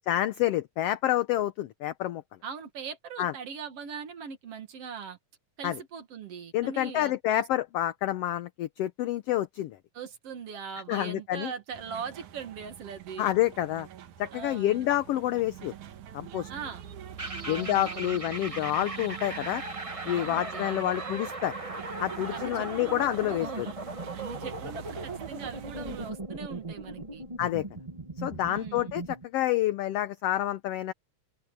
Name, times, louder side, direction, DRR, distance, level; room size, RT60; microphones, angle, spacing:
voice 1, 0.1-2.2 3.2-3.3 5.6-5.8 6.5-9.8 10.9-11.5 13.2-13.9 14.2-15.7 16.1-16.5 17.5-19.6 20.1-21.5 22.0-23.7 27.4-27.7 28.2-30.9, left 13 dB, 75° left, 1.5 m, -28 dB
voice 2, 2.4-5.2 5.6-7.4 9.9-13.3 14.3-14.9 16.5-16.8 17.4-18.2 20.1-21.0 22.2-23.8 24.1-27.2 28.5-29.0, right 6 dB, 55° right, 2.3 m, -41 dB
sound 1, 11.7-26.1, right 10 dB, 85° right, 2.8 m, -45 dB
sound 2, 17.2-29.2, right 2 dB, 25° right, 0.7 m, -38 dB
omnidirectional pair, 3.4 m